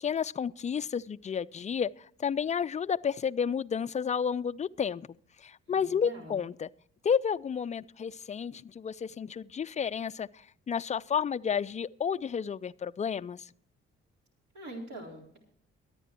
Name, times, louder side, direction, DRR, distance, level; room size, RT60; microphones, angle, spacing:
voice 1, 0.0-5.1 5.4-6.7 7.0-13.5, left 7 dB, 25° left, 0.4 m, -31 dB
voice 2, 5.7-6.4 14.5-15.4, right 1 dB, 60° right, 4.1 m, -44 dB
23.0 x 9.1 x 3.0 m
hypercardioid pair, 45°, 31 cm